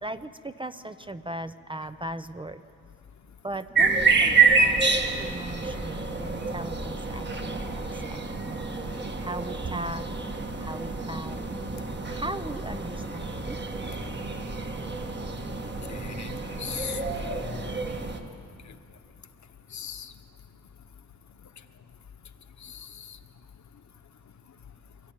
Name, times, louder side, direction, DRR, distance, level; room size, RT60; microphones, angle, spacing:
voice 1, 0.0-2.6 3.4-8.4 8.9-10.0 10.6-11.5 12.1-13.8, right 1 dB, 15° right, 11 dB, 0.5 m, -38 dB
sound 1, 3.8-18.2, right 4 dB, 35° right, 1.6 m, -28 dB
voice 2, 15.9-16.3 16.6-17.8 19.7-20.1 22.6-23.2, left 8 dB, 65° left, 8 dB, 1.1 m, -39 dB
24.5 x 14.5 x 9.1 m, 2.4 s
wide cardioid pair, 130°, 32 cm